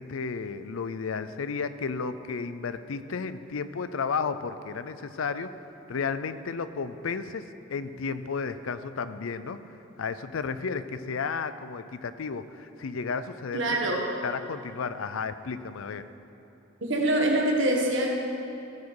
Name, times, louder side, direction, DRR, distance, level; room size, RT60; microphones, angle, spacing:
voice 1, 0.0-5.5 5.9-9.6 10.0-13.9 14.2-16.0, left 5 dB, 85° left, 12 dB, 0.5 m, -33 dB
voice 2, 13.5-14.0 16.8-18.1, right 1 dB, 65° right, -1 dB, 1.8 m, -24 dB
16.0 x 7.3 x 4.8 m, 2.9 s
head